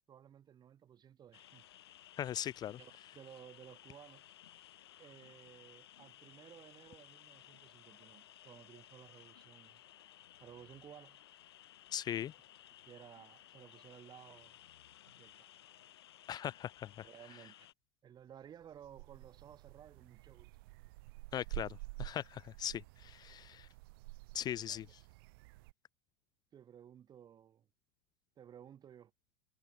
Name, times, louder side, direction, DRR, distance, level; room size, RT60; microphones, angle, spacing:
voice 1, 0.1-1.7 2.8-4.2 5.0-9.8 10.4-11.2 12.2-12.3 12.8-14.6 15.1-15.6 17.0-17.7 18.0-20.5 24.7-24.8 26.5-27.7 28.4-29.1, right 9 dB, 30° right, 4.9 m, -56 dB
sound 1, 1.3-17.7, left 12 dB, 80° left, 4.6 m, -59 dB
voice 2, 2.2-2.8 11.9-12.3 16.3-17.1 21.3-23.7 24.3-24.9, left 10 dB, 30° left, 0.5 m, -40 dB
sound 2, 18.4-25.7, right 24 dB, 65° right, 1.1 m, -49 dB
hypercardioid pair, 100°, 13 cm